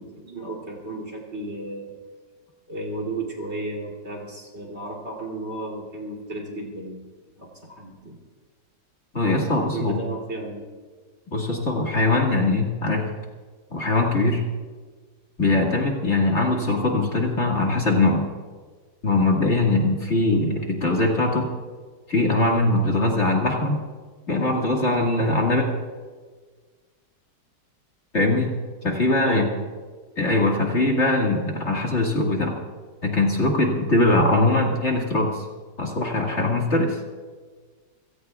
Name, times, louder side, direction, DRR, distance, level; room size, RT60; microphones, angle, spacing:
voice 1, 0.0-1.9 2.7-7.0 7.4-8.2 9.7-10.7 29.2-29.7, right 2 dB, 35° right, -1 dB, 3.3 m, -33 dB
voice 2, 9.1-10.0 11.3-13.1 13.7-14.4 15.4-18.3 19.0-21.5 22.1-23.8 24.3-25.6 28.1-28.5 28.8-29.5 30.2-32.6 33.0-35.4 35.8-37.0, left 2 dB, 40° left, -1 dB, 2.2 m, -21 dB
28.5 x 17.5 x 2.4 m, 1.5 s
omnidirectional pair, 1.9 m